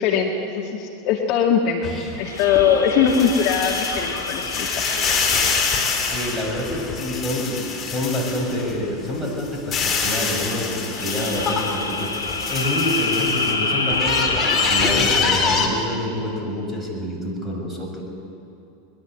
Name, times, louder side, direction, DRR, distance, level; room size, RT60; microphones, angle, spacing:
voice 1, 0.0-5.2, left 7 dB, 45° left, 1 dB, 2.0 m, -21 dB
sound 1, 1.8-8.8 9.2-13.5 13.9-15.7, left 5 dB, 25° left, 4.5 m, -25 dB
sound 2, 2.2-7.0 10.8-15.5, left 3 dB, 80° left, 1.4 m, -27 dB
voice 2, 6.1-18.0, left 1 dB, ahead, -1 dB, 7.1 m, -27 dB
22.0 x 21.5 x 8.1 m, 2.8 s
figure-of-eight pair, 85°, 0 cm